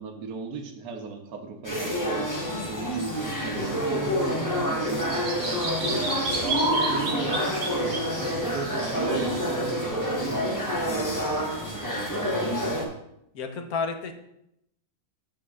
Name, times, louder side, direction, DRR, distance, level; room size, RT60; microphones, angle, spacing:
voice 1, 0.0-2.3 2.6-6.0 6.4-12.5, right 4 dB, 80° right, 4 dB, 1.4 m, -37 dB
sound 1, 1.6-12.9, equal, 15° left, 1.0 m, -28 dB
Bird vocalization bird call bird song, 3.9-9.8, right 3 dB, 60° right, 1.8 m, -33 dB
voice 2, 13.3-14.1, left 5 dB, 70° left, 5 dB, 1.3 m, -30 dB
12.5 x 5.2 x 2.4 m, 0.79 s
omnidirectional pair, 1.6 m